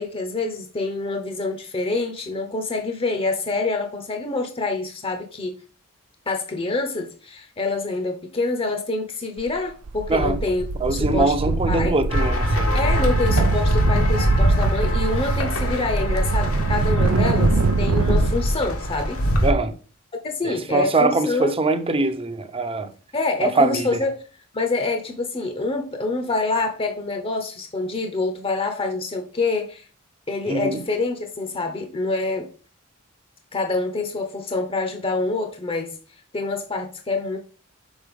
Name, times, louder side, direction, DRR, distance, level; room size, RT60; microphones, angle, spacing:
voice 1, 0.0-5.5 6.3-11.3 11.7-11.9 12.7-19.2 20.2-21.5 23.1-24.1 24.5-29.9 30.3-32.5 33.5-35.9 36.3-37.4, left 3 dB, 25° left, 0.9 m, -26 dB
sound 1, 9.4-9.6 9.9-18.3, right 3 dB, 80° right, 0.6 m, -23 dB
voice 2, 10.1-10.4 10.8-12.8 19.4-19.7 20.4-22.9 23.4-24.0 30.5-30.8, right 2 dB, 25° right, 0.8 m, -22 dB
sound 2, 12.1-19.5, equal, 80° left, 1.7 m, -23 dB
6.2 x 4.5 x 5.2 m
head